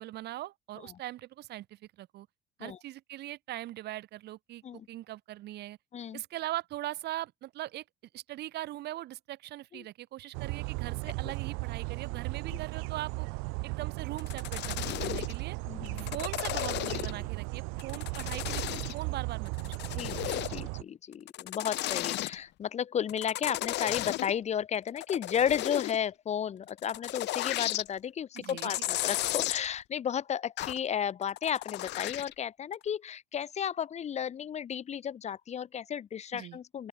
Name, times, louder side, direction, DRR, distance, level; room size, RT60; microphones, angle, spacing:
voice 1, 0.0-2.3 2.6-4.6 4.9-5.8 6.1-7.8 8.1-13.3 13.6-15.6 16.0-20.1 28.3-28.9 36.3-36.6, right 15 dB, 55° right, 1.5 m, -41 dB
sound 1, 10.3-20.8, right 33 dB, 80° right, 0.8 m, -36 dB
sound 2, 14.2-15.4 15.9-17.3 17.8-19.0 19.5-20.7 21.1-22.4 23.1-24.3 24.7-26.0 26.7-27.9 28.4-29.7 30.6-30.8 31.2-32.3 32.7-32.8, left 16 dB, 60° left, 1.7 m, -34 dB
voice 2, 15.7-16.1 20.0-36.9, left 8 dB, 35° left, 1.5 m, -33 dB
open air
cardioid pair, 130°, 20 cm